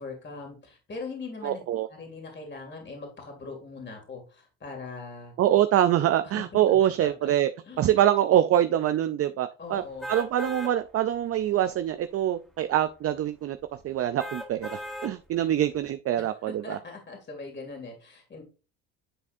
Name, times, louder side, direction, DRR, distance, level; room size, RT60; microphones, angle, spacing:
voice 1, 0.0-1.6 1.9-5.3 6.2-6.4 7.0-7.3 7.7-7.9 9.6-10.1 16.6-18.4, left 4 dB, 30° left, 2 dB, 2.4 m, -41 dB
voice 2, 1.4-1.9 5.4-7.5 7.8-9.8 10.1-13.6 13.8-16.8, right 11 dB, 40° right, 10 dB, 0.4 m, -24 dB
sound 1, 10.0-10.7 11.3-11.4 14.2-15.1 15.7-15.8, equal, ahead, 1.4 m, -37 dB
9.9 x 4.1 x 2.6 m, 0.33 s
supercardioid pair, 90°, 36 cm